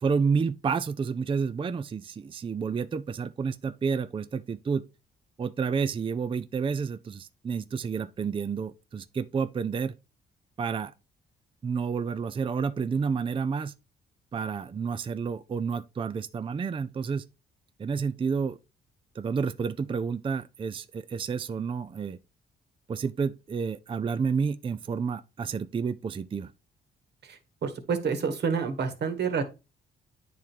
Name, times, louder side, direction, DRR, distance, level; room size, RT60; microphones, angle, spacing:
voice 1, 0.0-4.8 5.4-9.9 10.6-10.9 11.6-13.7 14.3-17.2 17.8-18.6 19.2-22.2 22.9-26.5, right 5 dB, 25° right, 0.4 m, -30 dB
voice 2, 27.2-29.4, right 6 dB, 60° right, 1.6 m, -29 dB
9.3 x 3.6 x 4.5 m
cardioid pair, 90°, 20 cm